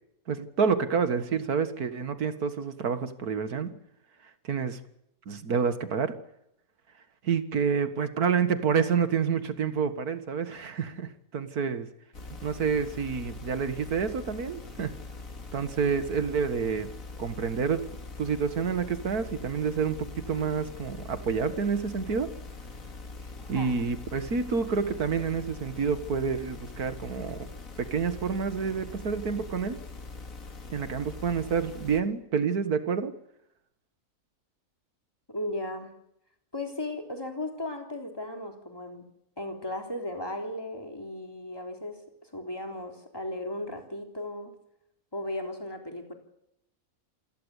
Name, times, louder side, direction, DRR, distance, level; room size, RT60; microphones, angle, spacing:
voice 1, 0.3-3.7 4.5-4.8 5.3-6.1 7.2-11.9 12.4-14.9 15.5-16.9 17.2-17.9 18.2-22.3 23.5-27.5 27.8-29.8 30.7-33.1, right 6 dB, 90° right, 10 dB, 2.2 m, -28 dB
sound 1, 12.1-32.0, left 3 dB, 65° left, 2.7 m, -43 dB
voice 2, 23.4-23.7 35.3-35.9 36.5-39.1 39.4-44.5 45.1-46.1, left 1 dB, 15° left, 3 dB, 3.6 m, -36 dB
27.5 x 16.5 x 8.3 m, 0.80 s
omnidirectional pair, 1.6 m